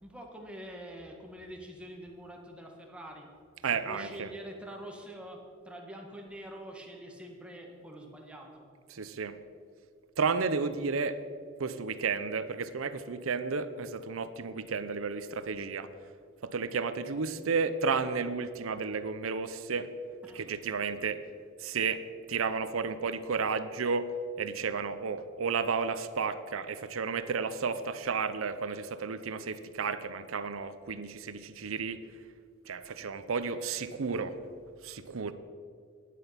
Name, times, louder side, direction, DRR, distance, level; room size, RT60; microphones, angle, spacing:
voice 1, 0.0-3.3 3.8-8.7 20.2-20.5, equal, 5° right, 0 dB, 1.5 m, -45 dB
voice 2, 3.6-4.3 8.9-9.4 10.2-11.2 11.6-15.9 16.4-19.9 20.3-21.2 21.6-22.0 22.3-24.1 24.4-32.0 32.7-34.4 34.8-35.3, right 5 dB, 90° right, 12 dB, 0.7 m, -32 dB
11.5 x 9.2 x 5.8 m, 2.2 s
head